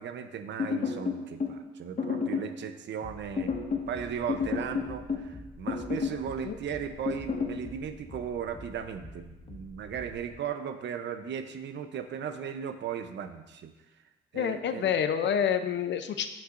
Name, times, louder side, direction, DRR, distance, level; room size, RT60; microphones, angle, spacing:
voice 1, 0.0-3.5 3.9-13.7 14.3-14.9, right 8 dB, 65° right, 8 dB, 0.8 m, -37 dB
sound 1, 0.6-1.6 2.0-2.5 3.4-3.9 4.3-5.3 5.7-6.2 7.1-7.6, left 5 dB, 45° left, 1.6 m, -30 dB
sound 2, 3.0-10.4, left 2 dB, 25° left, 1.0 m, -48 dB
voice 2, 14.3-16.3, left 8 dB, 65° left, 9 dB, 0.7 m, -28 dB
13.5 x 5.6 x 2.6 m, 1.0 s
cardioid pair, 90°, 20 cm